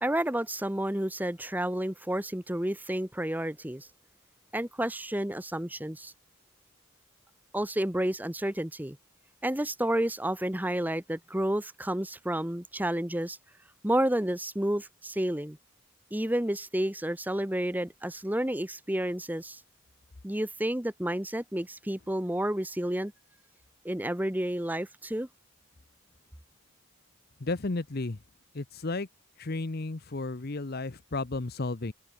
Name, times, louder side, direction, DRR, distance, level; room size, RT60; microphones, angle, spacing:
voice 1, 0.0-3.9 4.5-6.1 7.5-9.0 9.4-13.4 13.8-15.6 16.1-19.6 20.2-23.1 23.8-25.3, right 1 dB, 10° right, 1.0 m, -30 dB
voice 2, 27.4-28.2 28.5-29.1 29.4-31.9, left 2 dB, 45° left, 0.8 m, -33 dB
head